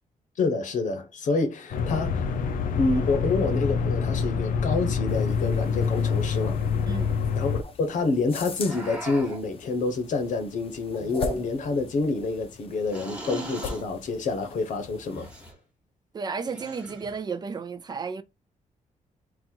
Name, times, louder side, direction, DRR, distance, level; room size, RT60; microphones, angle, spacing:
voice 1, 0.4-2.3 2.8-6.6 7.3-15.3, left 3 dB, 65° left, 1.0 m, -27 dB
sound 1, 1.7-7.6, left 5 dB, 85° left, 0.7 m, -26 dB
sound 2, 5.1-15.5, left 4 dB, 45° left, 0.6 m, -41 dB
voice 2, 6.9-7.2 16.1-18.2, right 5 dB, 30° right, 0.5 m, -33 dB
sound 3, 8.6-9.5 11.0-11.8 12.9-13.9 15.1-15.5 16.5-17.2, right 1 dB, 10° right, 1.1 m, -38 dB
3.9 x 2.4 x 4.5 m
wide cardioid pair, 175°, 14 cm